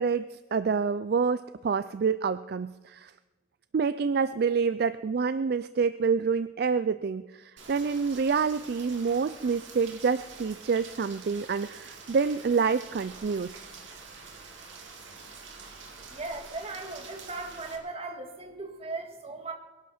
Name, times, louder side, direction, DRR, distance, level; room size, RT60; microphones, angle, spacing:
voice 1, 0.0-3.1 3.7-13.6, right 5 dB, 50° right, 13 dB, 0.4 m, -27 dB
Rain, 7.6-17.8, right 4 dB, 70° right, 2.4 m, -47 dB
voice 2, 16.1-19.5, right 3 dB, 30° right, 3 dB, 1.9 m, -38 dB
22.5 x 11.5 x 4.3 m, 1.2 s
head